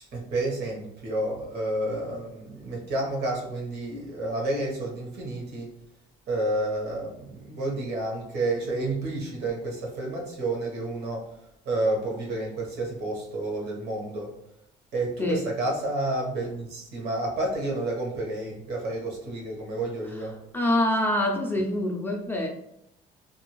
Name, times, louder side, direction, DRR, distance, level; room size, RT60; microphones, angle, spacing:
voice 1, 0.1-5.7 6.3-11.3 11.6-14.3 14.9-20.4, right 2 dB, 70° right, -1 dB, 1.1 m, -30 dB
voice 2, 20.5-22.5, left 1 dB, 10° left, 0 dB, 0.4 m, -25 dB
2.6 x 2.4 x 2.9 m, 0.79 s
cardioid pair, 110°, 17 cm